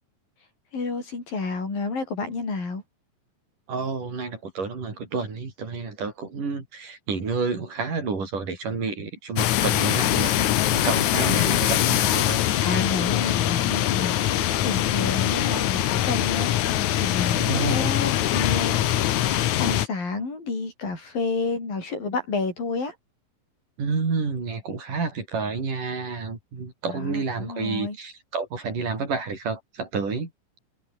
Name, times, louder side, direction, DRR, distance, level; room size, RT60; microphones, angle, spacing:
voice 1, 0.7-2.8 11.2-11.6 12.6-18.9 19.6-22.9 26.9-28.0, left 4 dB, 85° left, 9.6 m, -30 dB
voice 2, 3.7-12.4 17.3-17.9 23.8-30.3, right 4 dB, 65° right, 7.3 m, -30 dB
sound 1, 9.4-19.9, left 13 dB, 65° left, 2.3 m, -23 dB
omnidirectional pair, 3.9 m